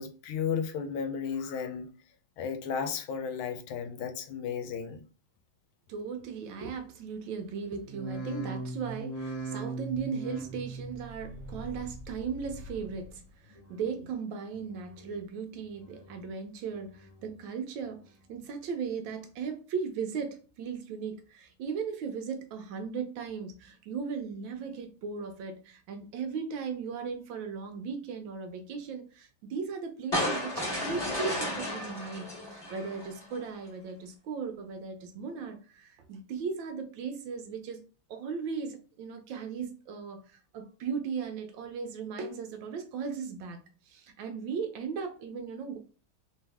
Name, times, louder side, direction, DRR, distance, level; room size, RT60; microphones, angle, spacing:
voice 1, 0.0-1.9 2.4-5.0, left 6 dB, 80° left, 1.4 m, -34 dB
voice 2, 5.9-37.8 38.1-45.8, right 6 dB, 75° right, 1.2 m, -37 dB
sound 1, 7.8-13.1 13.5-14.1 14.5-15.2 15.6-16.3 16.7-17.4 17.9-18.4 19.0-19.1, right 3 dB, 45° left, 1.3 m, -41 dB
sound 2, 30.1-33.4, left 1 dB, 15° left, 1.0 m, -33 dB
3.4 x 3.1 x 3.4 m
omnidirectional pair, 2.3 m